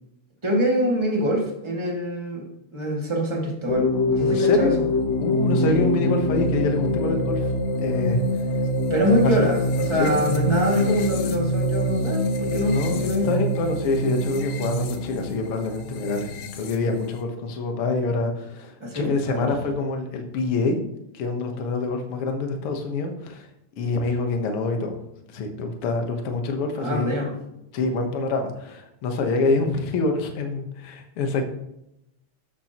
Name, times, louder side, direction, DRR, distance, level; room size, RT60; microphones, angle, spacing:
voice 1, 0.4-4.8 5.6-5.8 8.9-13.3 18.8-19.5 26.8-27.3, equal, 10° right, -3 dB, 1.8 m, -25 dB
sound 1, 3.7-17.2, left 1 dB, 75° left, 2.2 m, -25 dB
voice 2, 4.3-4.7 5.2-7.5 7.8-8.2 10.0-10.1 12.7-20.8 21.1-23.5 23.8-25.0 25.3-27.2 27.7-31.5, left 3 dB, 55° left, 4 dB, 1.9 m, -26 dB
12.5 x 8.9 x 3.0 m, 0.84 s
omnidirectional pair, 3.5 m